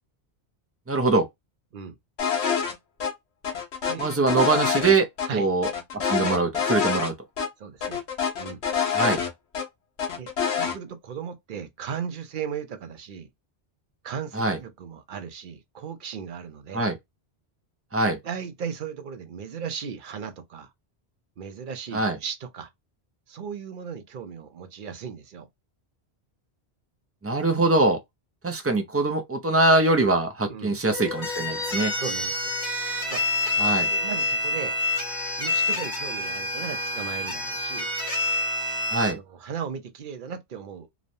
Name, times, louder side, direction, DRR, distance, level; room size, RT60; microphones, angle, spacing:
voice 1, 0.9-1.3 4.0-5.1 5.3-5.7 5.9-7.1 8.9-9.2 14.3-14.6 16.7-17.0 17.9-18.2 21.9-22.2 27.2-28.0 28.4-31.9 33.6-33.9 38.9-39.2, right 3 dB, 25° right, 0.3 m, -22 dB
sound 1, 2.2-2.7 3.0-3.1 3.4-5.3 5.6-7.1 7.4-7.5 7.8-9.7 10.0-10.7, left 7 dB, 85° left, 1.1 m, -26 dB
voice 2, 7.6-8.0 8.4-8.6 10.2-13.3 14.0-16.8 18.2-20.7 21.4-22.7 23.3-25.5 30.5-30.8 31.9-32.5 33.1-33.3 33.9-34.7 35.4-37.9 39.1-40.9, right 7 dB, 55° right, 0.7 m, -36 dB
sound 2, 30.8-39.1, left 2 dB, 40° left, 1.4 m, -27 dB
3.0 x 2.1 x 2.6 m
omnidirectional pair, 1.1 m